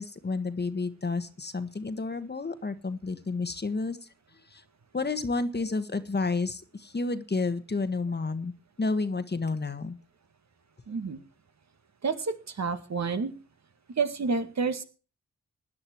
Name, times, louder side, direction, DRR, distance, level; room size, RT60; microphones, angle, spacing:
voice 1, 0.0-4.1 4.5-4.6 4.9-8.5 8.8-10.0, left 3 dB, 30° left, 10 dB, 1.6 m, -30 dB
voice 2, 10.9-11.2 12.0-13.3 14.0-14.8, right 4 dB, 55° right, 8 dB, 2.1 m, -29 dB
16.5 x 10.5 x 4.7 m, 0.36 s
cardioid pair, 75°, 33 cm